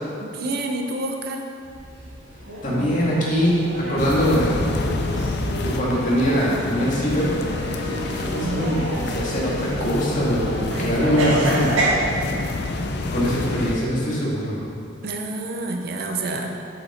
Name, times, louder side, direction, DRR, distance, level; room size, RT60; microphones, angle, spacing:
voice 1, 0.2-1.4 8.4-8.7 15.0-16.6, right 2 dB, 50° right, 3 dB, 0.6 m, -28 dB
sound 1, 1.6-11.9, right 1 dB, 75° right, 1.5 m, -30 dB
voice 2, 2.6-4.5 5.6-7.4 7.9-11.7 13.1-14.6, equal, 40° left, -6 dB, 2.0 m, -22 dB
sound 2, 4.0-13.8, left 2 dB, 55° left, 0.6 m, -28 dB
7.8 x 6.7 x 4.3 m, 2.5 s
head